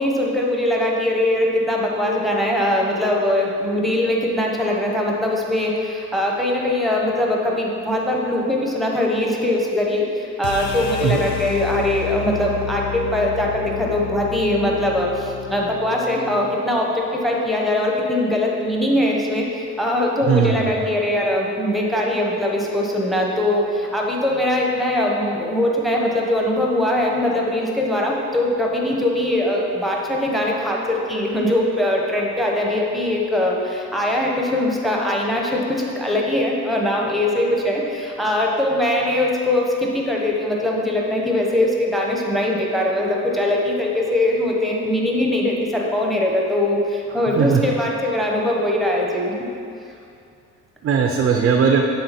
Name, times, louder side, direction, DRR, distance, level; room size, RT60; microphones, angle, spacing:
voice 1, 0.0-49.3, left 1 dB, ahead, -2 dB, 1.0 m, -21 dB
sound 1, 10.4-16.6, left 10 dB, 70° left, 0.5 m, -30 dB
voice 2, 20.3-20.7 47.3-47.7 50.8-51.8, right 6 dB, 45° right, 2 dB, 0.5 m, -18 dB
7.7 x 3.8 x 4.2 m, 2.5 s
cardioid pair, 90°, 30 cm